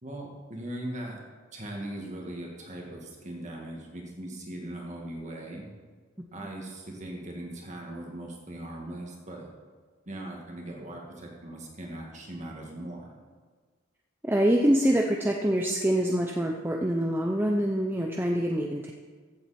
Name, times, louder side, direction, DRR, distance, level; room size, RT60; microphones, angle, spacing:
voice 1, 0.0-1.2 1.5-5.7 6.3-9.5 10.1-13.1, right 1 dB, 35° right, -1 dB, 2.0 m, -39 dB
voice 2, 14.2-18.9, right 1 dB, 10° right, 1 dB, 0.5 m, -25 dB
15.0 x 7.8 x 4.3 m, 1.5 s
head